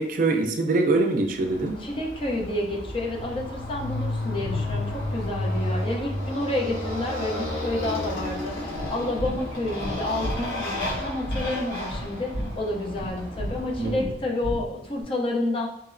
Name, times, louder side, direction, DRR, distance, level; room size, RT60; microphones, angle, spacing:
voice 1, 0.0-1.8 13.8-14.1, right 3 dB, 50° right, 4 dB, 0.4 m, -24 dB
Motorcycle, 1.4-14.1, left 1 dB, 80° left, 1.0 m, -32 dB
voice 2, 1.8-15.7, left 1 dB, 30° left, 0 dB, 0.5 m, -30 dB
sound 1, 8.7-15.0, equal, 60° left, 1.1 m, -35 dB
2.9 x 2.9 x 2.5 m, 0.80 s
head